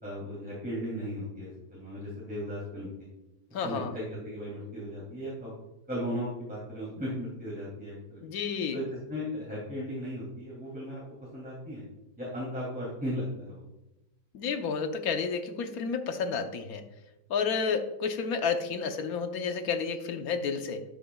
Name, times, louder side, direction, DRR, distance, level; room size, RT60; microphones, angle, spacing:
voice 1, 0.0-3.1 3.5-5.5 5.9-8.2 8.7-11.0 11.3-11.8 12.2-13.6, equal, 5° right, -8 dB, 2.8 m, -36 dB
voice 2, 3.5-3.9 8.2-8.8 14.3-16.8 17.3-20.8, left 5 dB, 65° left, 7 dB, 1.3 m, -31 dB
12.5 x 8.8 x 2.3 m, 0.99 s
omnidirectional pair, 1.8 m